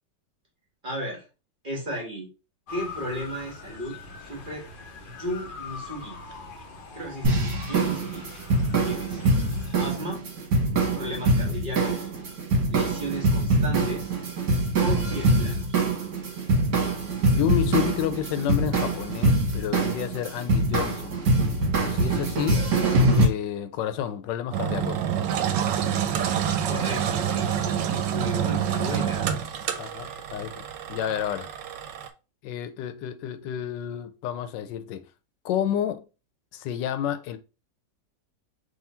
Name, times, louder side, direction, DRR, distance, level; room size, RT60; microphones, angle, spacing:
voice 1, 0.8-1.2 1.6-2.3 2.7-4.7 5.0-6.2 6.9-8.3 8.8-9.2 9.8-10.2 10.9-12.1 12.7-14.1 14.8-15.8 26.7-29.3, equal, 30° right, 1.6 m, -35 dB
Motor vehicle (road) / Siren, 2.7-9.9, left 3 dB, 60° left, 0.5 m, -42 dB
sound 1, 7.2-23.3, right 2 dB, 60° right, 1.7 m, -24 dB
voice 2, 17.4-21.2 21.8-22.7 23.1-25.0 29.8-30.6 30.9-31.5 32.4-35.0 35.4-36.0 36.5-37.4, left 10 dB, 85° left, 1.2 m, -30 dB
Engine, 24.5-32.1, right 8 dB, 80° right, 1.3 m, -27 dB
3.7 x 2.9 x 4.2 m
omnidirectional pair, 1.9 m